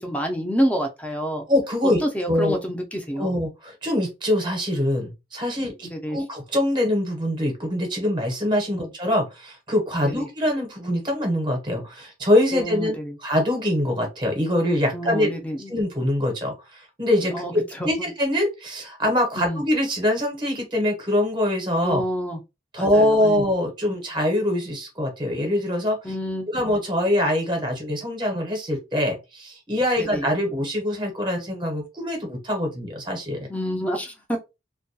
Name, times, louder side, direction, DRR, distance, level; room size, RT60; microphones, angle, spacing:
voice 1, 0.0-1.5 1.8-3.3 5.6-6.2 8.7-8.9 10.1-10.3 12.5-13.2 14.9-15.7 17.3-18.1 19.4-19.6 21.8-22.4 22.8-23.4 26.0-26.5 30.0-30.3 33.5-34.4, equal, 5° left, 0.4 m, -28 dB
voice 2, 1.5-2.0 2.3-2.6 3.2-13.0 13.2-15.3 15.7-17.5 17.8-22.0 22.7-26.1 26.5-33.5, left 1 dB, 25° right, 0.7 m, -24 dB
2.2 x 2.2 x 2.6 m
head